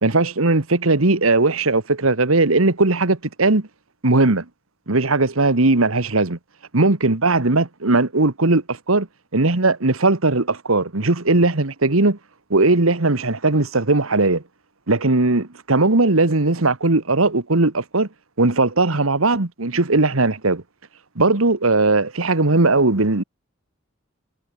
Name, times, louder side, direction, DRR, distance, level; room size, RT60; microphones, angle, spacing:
voice 1, 0.0-3.7 4.0-4.4 4.9-6.4 6.7-9.1 9.3-12.2 12.5-14.4 14.9-18.1 18.4-20.6 21.1-23.2, right 2 dB, 80° right, 1.7 m, -18 dB
head